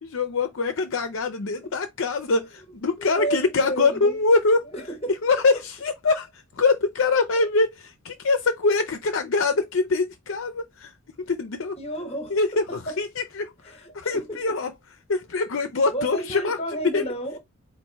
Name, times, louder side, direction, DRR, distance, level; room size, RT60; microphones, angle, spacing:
voice 1, 0.0-4.7 5.2-10.9 11.3-11.8 12.3-14.7 15.1-16.6 16.9-17.0, left 3 dB, 60° left, 0.5 m, -24 dB
voice 2, 3.0-4.2 4.7-5.2 7.4-7.5 11.7-13.0 13.6-14.6 15.9-17.4, right 1 dB, 25° left, 1.0 m, -32 dB
4.1 x 2.6 x 4.4 m
head